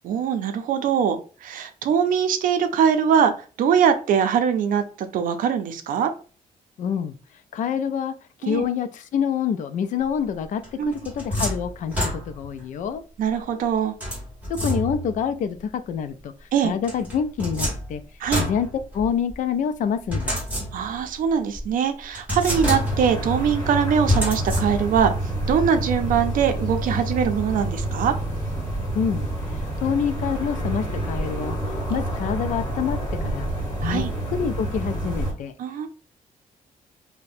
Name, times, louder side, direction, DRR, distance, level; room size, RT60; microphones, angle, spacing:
voice 1, 0.0-3.3 3.6-6.1 8.4-8.6 10.8-11.0 13.2-13.9 16.5-16.7 18.2-18.5 20.7-25.1 25.5-28.1 33.8-34.1 35.6-35.9, right 7 dB, 75° right, 8 dB, 0.5 m, -22 dB
voice 2, 6.8-7.2 7.5-8.2 8.4-13.0 14.6-18.0 18.4-20.4 28.9-31.6 31.9-33.5 33.8-35.5, left 7 dB, 65° left, 10 dB, 0.4 m, -27 dB
sound 1, 10.6-12.6 14.0-15.2 16.8-19.3 20.1-21.1 21.5-21.6 22.1-23.2 24.1-25.1, equal, 10° right, 1.4 m, -28 dB
sound 2, 22.5-35.3, right 1 dB, 25° left, 1.6 m, -28 dB
2.7 x 2.1 x 4.0 m, 0.37 s
wide cardioid pair, 165°, 14 cm